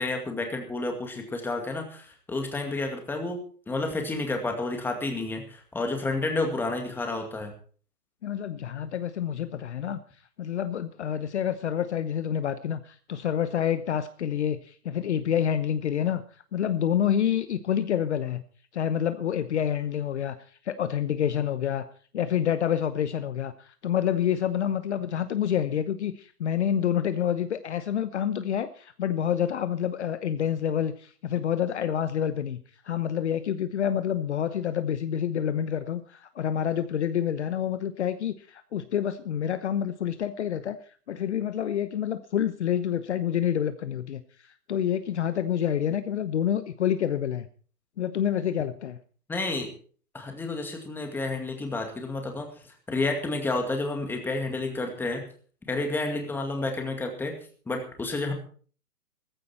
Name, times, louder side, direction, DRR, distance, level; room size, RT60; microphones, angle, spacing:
voice 1, 0.0-3.4 3.7-7.5 49.3-49.7 50.1-52.5 52.9-55.2 55.7-57.3 57.7-58.3, left 2 dB, 5° left, 3 dB, 2.1 m, -30 dB
voice 2, 8.2-10.0 10.4-16.2 16.5-18.4 18.7-20.4 20.6-21.9 22.1-32.6 32.8-40.8 41.1-44.2 44.7-47.5 48.0-49.0, left 9 dB, 45° left, 12 dB, 1.0 m, -28 dB
15.0 x 15.0 x 4.4 m, 0.43 s
hypercardioid pair, 145°, 46 cm